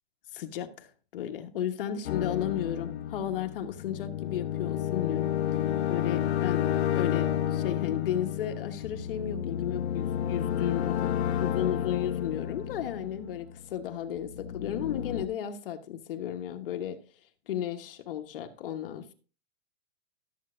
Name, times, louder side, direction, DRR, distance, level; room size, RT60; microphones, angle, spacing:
voice 1, 0.3-5.3 5.9-6.7 6.9-11.0 11.4-17.0 17.5-19.1, left 10 dB, 55° left, 1.1 m, -34 dB
sound 1, 2.1-13.7 14.2-15.3, left 10 dB, 75° left, 0.8 m, -31 dB
13.5 x 7.6 x 2.5 m
supercardioid pair, 165°, 32 cm